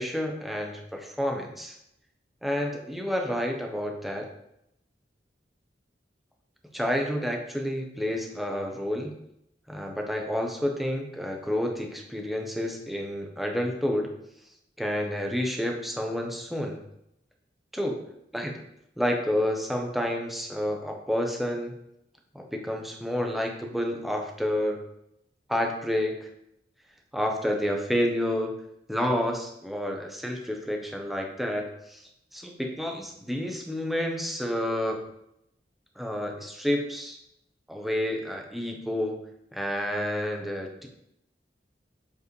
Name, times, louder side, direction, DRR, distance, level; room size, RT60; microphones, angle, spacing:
voice 1, 0.0-1.8 2.4-4.3 6.7-9.1 9.7-14.1 14.8-16.8 17.7-18.0 18.3-18.6 19.0-21.7 22.3-24.8 25.5-26.3 27.1-28.5 28.9-32.0 32.3-35.0 36.0-37.2 37.7-39.2 39.5-40.9, equal, ahead, 2 dB, 0.9 m, -29 dB
7.6 x 5.3 x 3.2 m, 0.79 s
head